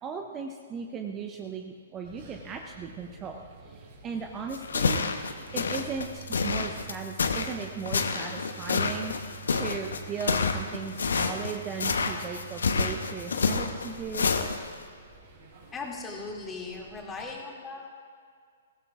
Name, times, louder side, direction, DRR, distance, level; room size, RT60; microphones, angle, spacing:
voice 1, 0.0-5.0 5.5-14.3, right 6 dB, 20° right, 3 dB, 0.9 m, -37 dB
sound 1, 2.0-17.4, right 4 dB, 50° right, 4.4 m, -48 dB
sound 2, 4.5-14.8, left 4 dB, 70° left, 1.0 m, -28 dB
voice 2, 15.7-17.9, left 3 dB, 15° left, -1 dB, 2.5 m, -38 dB
21.0 x 17.0 x 2.5 m, 2.1 s
figure-of-eight pair, 120°, 0 cm